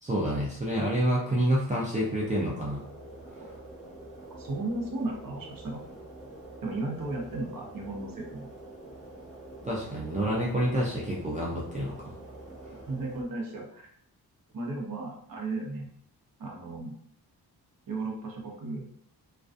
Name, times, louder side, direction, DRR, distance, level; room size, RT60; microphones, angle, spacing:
voice 1, 0.0-2.8 9.6-12.1, right 1 dB, 20° right, -5 dB, 0.3 m, -28 dB
sound 1, 2.0-13.2, right 2 dB, ahead, 1.0 m, -46 dB
voice 2, 4.4-5.8 6.6-8.5 12.9-13.9 14.5-15.9 16.4-16.9 17.9-18.9, right 2 dB, 55° right, 0 dB, 0.7 m, -35 dB
2.4 x 2.2 x 2.4 m, 0.68 s
wide cardioid pair, 145°, 40 cm